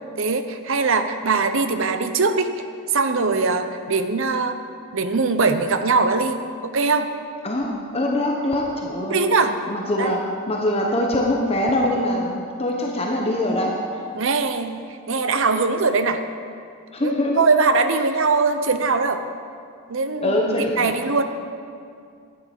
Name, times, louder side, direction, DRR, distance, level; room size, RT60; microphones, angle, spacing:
voice 1, 0.2-2.5 2.9-4.6 4.9-7.1 9.0-9.6 10.0-10.2 14.1-16.2 17.0-19.2 19.9-21.2, right 4 dB, 60° right, 8 dB, 0.7 m, -21 dB
voice 2, 7.4-9.3 9.7-13.8 16.9-17.4 20.2-20.9, left 1 dB, 25° left, -1 dB, 1.0 m, -23 dB
11.5 x 9.6 x 6.0 m, 2.3 s
head